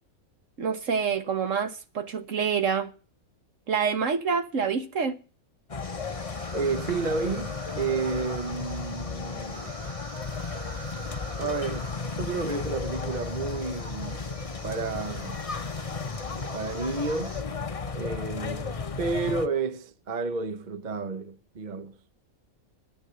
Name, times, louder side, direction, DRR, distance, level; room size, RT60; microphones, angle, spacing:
voice 1, 0.6-2.9 3.7-5.2, right 6 dB, 60° right, 1.6 m, -27 dB
sound 1, 5.7-19.5, left 4 dB, 30° left, 0.7 m, -34 dB
sound 2, 5.8-17.4, right 2 dB, 80° right, 4.0 m, -46 dB
voice 2, 6.5-9.7 11.4-14.2 14.6-15.5 16.3-17.4 17.9-18.7 19.0-21.9, right 4 dB, 40° right, 0.9 m, -31 dB
10.5 x 9.8 x 9.7 m
omnidirectional pair, 1.5 m